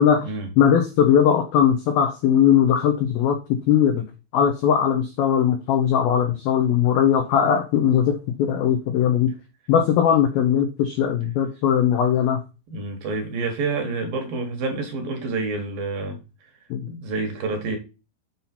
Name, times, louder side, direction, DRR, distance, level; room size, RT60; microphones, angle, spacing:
voice 1, 0.0-0.3 0.6-3.4 3.7-4.0 4.3-9.3 9.7-12.4 16.7-16.8, left 8 dB, 80° left, 2.1 m, -19 dB
voice 2, 12.7-16.2 16.9-17.8, right 3 dB, 65° right, 2.4 m, -28 dB
7.6 x 5.5 x 4.2 m
omnidirectional pair, 5.4 m